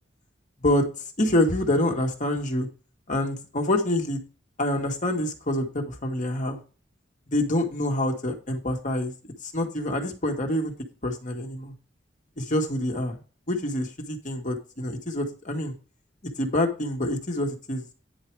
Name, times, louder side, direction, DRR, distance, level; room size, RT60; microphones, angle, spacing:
voice 1, 1.2-2.7 3.1-4.2 4.6-6.6 7.3-10.7 11.0-11.7 12.4-13.2 13.5-15.7 16.4-17.9, left 1 dB, 45° left, 3 dB, 1.8 m, -26 dB
10.0 x 4.9 x 4.7 m, 0.35 s
head